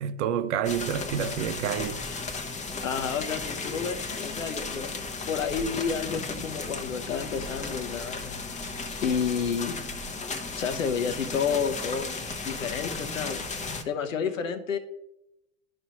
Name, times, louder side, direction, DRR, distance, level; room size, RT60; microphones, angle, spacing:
voice 1, 0.0-2.0, right 8 dB, 65° right, 0.7 m, -28 dB
sound 1, 0.6-13.8, left 4 dB, 20° left, 0.8 m, -35 dB
voice 2, 2.8-5.0 5.3-8.3 9.0-9.9 10.6-12.1 12.4-13.4 13.8-14.8, left 6 dB, 80° left, 0.8 m, -30 dB
11.0 x 5.2 x 2.9 m
figure-of-eight pair, 80°, 39 cm